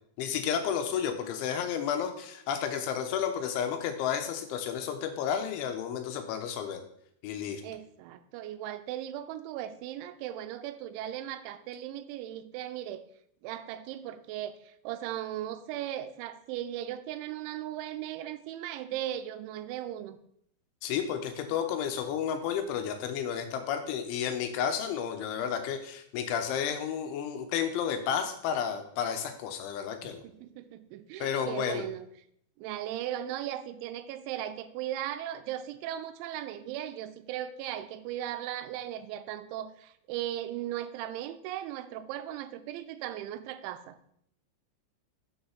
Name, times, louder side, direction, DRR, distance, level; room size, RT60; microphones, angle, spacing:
voice 1, 0.2-6.8 7.2-7.6 20.8-30.2 31.2-31.8, left 8 dB, 90° left, 7 dB, 3.3 m, -32 dB
voice 2, 7.6-13.1 13.4-20.2 30.0-32.1 32.6-44.1, right 12 dB, 90° right, 11 dB, 3.0 m, -37 dB
7.3 x 5.6 x 5.8 m, 0.70 s
omnidirectional pair, 5.3 m